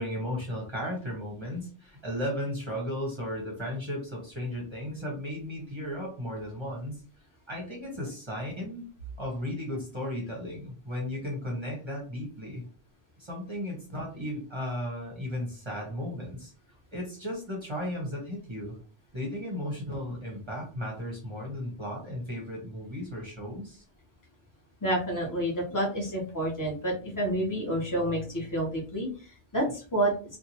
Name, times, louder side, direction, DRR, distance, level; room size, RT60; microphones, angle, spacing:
voice 1, 0.0-7.0 7.5-8.9 9.2-12.6 13.2-16.5 16.9-18.7 19.1-23.8, left 1 dB, 30° right, -2 dB, 0.8 m, -35 dB
voice 2, 24.8-30.4, right 1 dB, 20° left, -2 dB, 1.0 m, -29 dB
2.6 x 2.3 x 2.8 m, 0.38 s
omnidirectional pair, 1.0 m